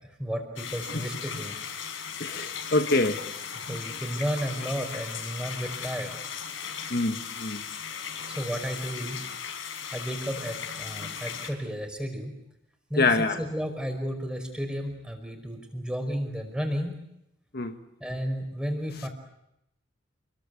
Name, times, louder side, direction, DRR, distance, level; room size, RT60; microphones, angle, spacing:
voice 1, 0.2-1.6 3.7-6.1 8.3-9.3 9.9-12.3 12.9-17.0 18.0-19.1, equal, 5° right, 5.3 m, -33 dB
sound 1, 0.6-11.5, left 7 dB, 80° left, 4.9 m, -37 dB
voice 2, 2.2-3.3 6.9-7.6 13.0-13.4 17.5-17.8, left 2 dB, 50° left, 1.4 m, -25 dB
29.5 x 22.0 x 8.4 m
head